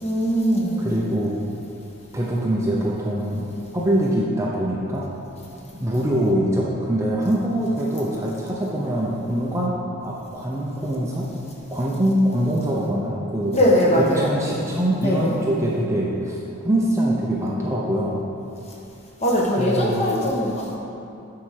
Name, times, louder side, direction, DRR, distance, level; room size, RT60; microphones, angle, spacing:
voice 1, 0.0-0.8 13.5-14.3 15.0-15.4 19.2-20.8, equal, 30° left, -4 dB, 1.3 m, -20 dB
voice 2, 0.8-1.4 2.1-5.1 5.8-9.7 10.0-11.3 11.7-13.6 14.0-16.4 16.6-18.2 19.6-20.1, right 1 dB, 15° right, -4 dB, 0.6 m, -23 dB
9.1 x 4.8 x 5.8 m, 2.8 s
head